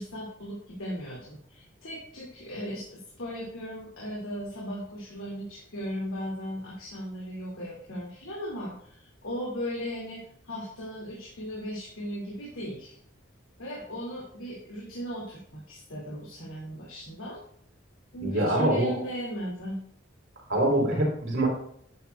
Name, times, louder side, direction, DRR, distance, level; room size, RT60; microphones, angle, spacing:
voice 1, 0.0-13.0 13.6-17.4 18.1-19.8, equal, 90° left, -4 dB, 2.4 m, -37 dB
voice 2, 18.2-19.0 20.5-21.5, right 1 dB, 60° right, -1 dB, 3.5 m, -24 dB
11.5 x 9.5 x 2.4 m, 0.66 s
head